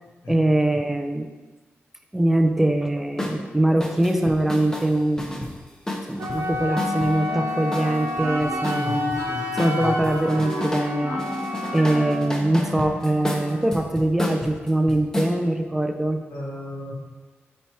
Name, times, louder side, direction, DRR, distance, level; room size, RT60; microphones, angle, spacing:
voice 1, 0.3-1.3 2.1-5.5 6.1-9.2 9.5-11.3 11.7-16.2, right 1 dB, 5° right, 5 dB, 0.5 m, -22 dB
sound 1, 3.2-3.4 3.8-7.1 7.7-9.2 9.6-10.9 11.2-15.3, left 1 dB, 15° left, 0.8 m, -32 dB
Wind instrument woodwind instrument, 6.2-12.2, left 1 dB, 80° right, 0.7 m, -30 dB
Wind instrument woodwind instrument 2, 6.3-13.8, left 2 dB, 60° left, 1.3 m, -34 dB
voice 2, 8.7-9.9 11.7-11.8 16.3-16.9, left 2 dB, 90° left, -4 dB, 2.1 m, -34 dB
8.6 x 4.4 x 4.6 m, 1.2 s
wide cardioid pair, 165°, 4 cm